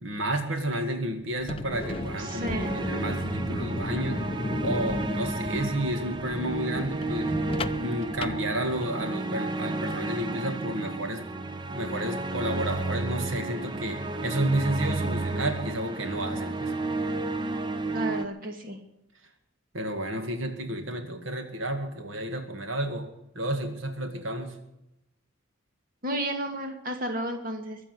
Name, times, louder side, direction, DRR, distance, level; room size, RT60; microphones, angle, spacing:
voice 1, 0.0-4.3 4.6-7.4 7.7-11.2 11.7-16.7 19.7-23.1 23.4-24.6, right 1 dB, 80° right, 6 dB, 2.1 m, -31 dB
sound 1, 1.3-9.1, left 2 dB, 25° left, 0.5 m, -35 dB
sound 2, 1.7-18.3, right 2 dB, 20° right, 0.9 m, -32 dB
voice 2, 2.2-2.8 17.9-18.8 26.0-27.8, right 1 dB, 45° right, 4 dB, 2.5 m, -32 dB
Knock, 2.5-3.4, equal, ahead, 4.4 m, -40 dB
22.5 x 7.8 x 7.8 m, 0.86 s
head